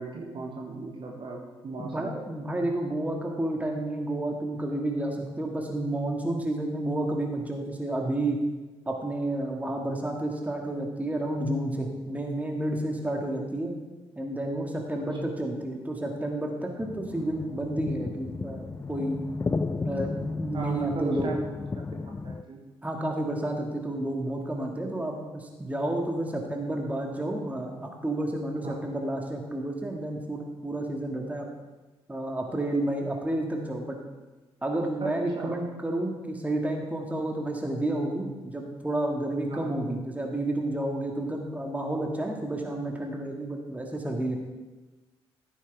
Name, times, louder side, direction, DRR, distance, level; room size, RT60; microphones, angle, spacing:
voice 1, 0.0-2.1 15.0-15.1 20.5-21.4 22.2-22.6 28.6-28.8 35.0-35.5 39.5-39.8, right 3 dB, 40° right, -1 dB, 1.6 m, -36 dB
voice 2, 1.8-8.4 8.9-13.7 14.2-19.2 19.8-21.3 22.8-31.5 32.1-34.0 34.6-44.4, right 1 dB, 10° right, 1 dB, 2.2 m, -30 dB
sound 1, 16.8-22.4, left 3 dB, 20° left, 0.5 m, -34 dB
14.5 x 8.6 x 3.6 m, 1.2 s
figure-of-eight pair, 45°, 13 cm